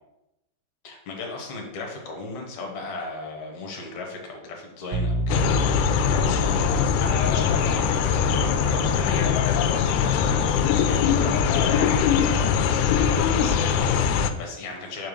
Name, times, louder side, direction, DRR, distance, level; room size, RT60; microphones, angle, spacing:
voice 1, 0.8-15.1, left 3 dB, 60° left, 1 dB, 2.1 m, -36 dB
sound 1, 4.9-10.7, right 1 dB, 85° right, 3.0 m, -32 dB
sound 2, 5.3-14.3, left 7 dB, 85° left, 2.6 m, -22 dB
5.8 x 4.9 x 6.5 m, 0.90 s
omnidirectional pair, 4.7 m